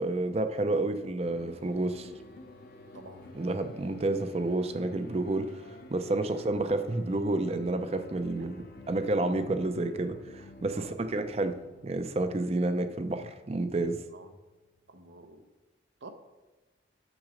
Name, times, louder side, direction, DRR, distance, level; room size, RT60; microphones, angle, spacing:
voice 1, 0.0-2.1 3.3-5.5 5.9-10.2 10.6-11.5 11.8-14.0, right 2 dB, 35° right, 9 dB, 0.5 m, -30 dB
sound 1, 1.3-15.0, left 2 dB, 55° left, 0.8 m, -51 dB
voice 2, 10.7-11.1 14.1-14.3 14.9-15.5 16.0-16.1, right 2 dB, 80° right, 7 dB, 0.8 m, -48 dB
6.5 x 6.1 x 5.0 m, 1.2 s
head